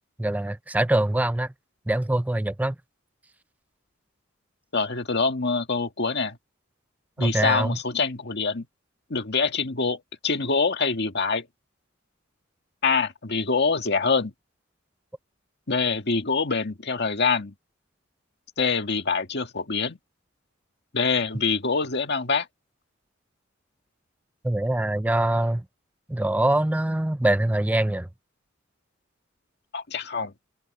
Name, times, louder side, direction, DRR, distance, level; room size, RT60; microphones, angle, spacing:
voice 1, 0.2-1.5 1.9-2.8 7.2-7.8 24.4-25.6 26.1-28.1, right 1 dB, 10° right, 0.4 m, -24 dB
voice 2, 4.7-6.4 7.2-8.7 9.1-11.5 12.8-14.3 15.7-17.5 18.6-20.0 20.9-22.5 29.7-30.3, left 4 dB, 55° left, 1.9 m, -25 dB
open air
head